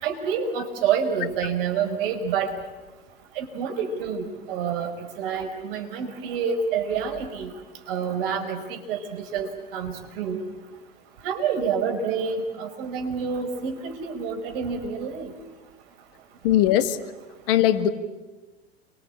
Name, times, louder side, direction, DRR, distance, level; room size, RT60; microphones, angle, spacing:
voice 1, 0.0-2.5 3.3-4.9 5.2-7.5 7.9-10.4 11.2-15.3, right 6 dB, 60° right, 5 dB, 5.0 m, -28 dB
voice 2, 16.4-17.0 17.5-17.9, left 11 dB, 60° left, 11 dB, 1.9 m, -19 dB
29.5 x 23.0 x 8.7 m, 1.2 s
figure-of-eight pair, 85°, 31 cm